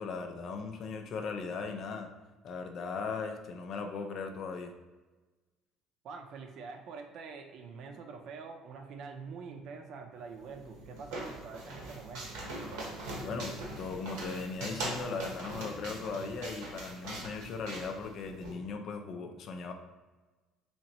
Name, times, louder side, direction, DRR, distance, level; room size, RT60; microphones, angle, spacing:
voice 1, 0.0-2.1 2.4-4.7 13.2-19.7, left 4 dB, 55° left, 5 dB, 0.4 m, -38 dB
voice 2, 6.0-12.4, right 5 dB, 65° right, 4 dB, 0.5 m, -45 dB
sound 1, 10.4-18.5, right 2 dB, 90° right, 1.0 m, -41 dB
4.2 x 2.9 x 2.9 m, 1.2 s
supercardioid pair, 100°, 0 cm